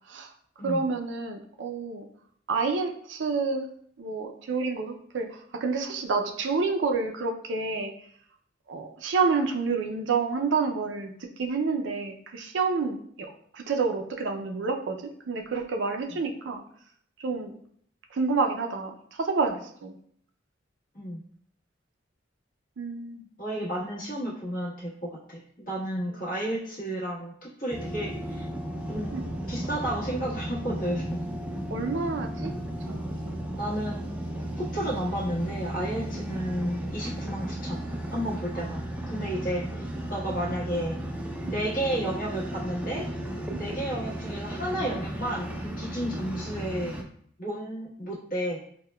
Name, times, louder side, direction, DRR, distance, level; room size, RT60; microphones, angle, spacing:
voice 1, 0.6-2.1 2.5-3.7 4.0-8.1 8.7-16.6 17.2-17.6 18.1-20.0 22.8-23.3 26.1-26.3 29.1-29.3 31.7-32.5 32.8-33.0 36.1-36.2 38.5-38.7 41.4-41.6 43.5-43.7 46.0-46.1, right 4 dB, 70° right, 4 dB, 0.4 m, -29 dB
voice 2, 23.4-28.4 28.9-29.1 29.5-31.2 33.6-34.1 34.6-38.8 39.1-39.8 40.1-41.0 41.4-43.1 43.6-46.9 47.4-48.6, right 1 dB, 50° left, -6 dB, 1.3 m, -32 dB
sound 1, 27.7-47.0, right 1 dB, 10° right, 0.4 m, -34 dB
5.4 x 2.2 x 2.2 m, 0.64 s
head